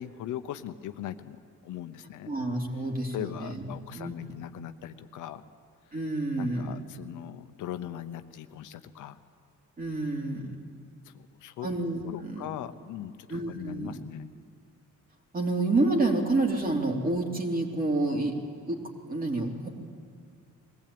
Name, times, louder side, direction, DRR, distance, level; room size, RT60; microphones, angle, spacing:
voice 1, 0.0-2.3 3.1-5.4 6.4-9.2 11.0-11.7 12.0-14.3, left 11 dB, 85° left, 10 dB, 0.9 m, -40 dB
voice 2, 2.3-3.6 3.9-4.1 5.9-6.7 9.8-10.7 11.6-12.5 13.3-13.9 15.3-18.3 18.6-18.8 19.1-19.7, right 2 dB, 30° right, 1 dB, 3.2 m, -28 dB
22.0 x 16.0 x 8.7 m, 2.1 s
cardioid pair, 90°, 30 cm